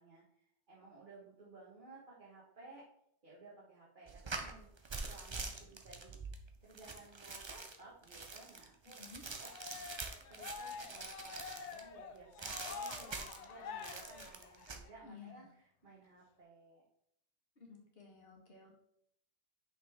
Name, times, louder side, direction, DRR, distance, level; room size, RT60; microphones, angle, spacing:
voice 1, 0.0-2.9 3.2-4.7 5.0-6.2 6.6-9.0 9.4-9.5 10.3-16.8, right 3 dB, 50° right, -5 dB, 1.5 m, -57 dB
sound 1, 4.1-11.9 12.4-13.5 13.8-14.8, right 3 dB, 30° right, 0.6 m, -45 dB
voice 2, 8.9-9.2 15.0-15.5 17.6-18.7, left 5 dB, 60° left, -1 dB, 1.7 m, -55 dB
Cheering, 9.4-14.9, left 6 dB, 90° left, 1.0 m, -47 dB
6.0 x 5.4 x 3.5 m, 0.71 s
omnidirectional pair, 1.1 m